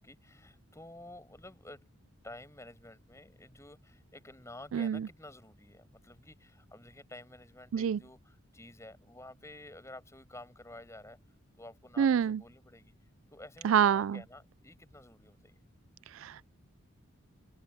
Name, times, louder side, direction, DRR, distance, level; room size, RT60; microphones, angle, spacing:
voice 1, 0.0-1.9 2.2-11.2 11.6-12.9 13.3-15.6, left 1 dB, 15° left, 6.1 m, -51 dB
voice 2, 4.7-5.1 7.7-8.0 12.0-12.4 13.6-14.2 16.1-16.4, right 8 dB, 70° right, 0.3 m, -27 dB
open air
head